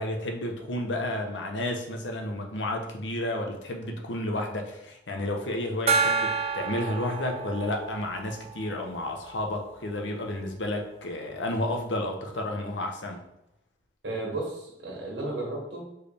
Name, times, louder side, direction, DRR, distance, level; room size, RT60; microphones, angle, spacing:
voice 1, 0.0-13.2, left 1 dB, 85° left, 3 dB, 0.8 m, -31 dB
Gong, 5.9-9.1, right 5 dB, 35° right, 0.4 m, -29 dB
voice 2, 14.0-15.8, right 2 dB, 90° right, -1 dB, 1.5 m, -33 dB
4.6 x 3.2 x 3.3 m, 0.84 s
head